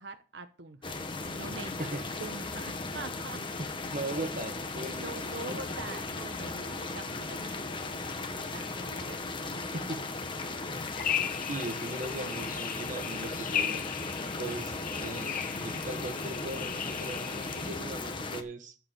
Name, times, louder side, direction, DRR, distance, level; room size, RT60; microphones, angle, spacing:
voice 1, 0.0-1.9 2.2-3.6 4.9-9.6, right 3 dB, 75° right, 1.1 m, -45 dB
sound 1, 0.8-18.4, left 3 dB, 30° left, 1.4 m, -37 dB
voice 2, 3.6-5.2 5.5-5.6 9.7-10.0 11.5-13.8 14.4-18.8, right 2 dB, 45° right, 1.4 m, -39 dB
sound 2, 11.0-17.8, left 9 dB, 50° left, 1.1 m, -37 dB
13.5 x 4.8 x 8.1 m
head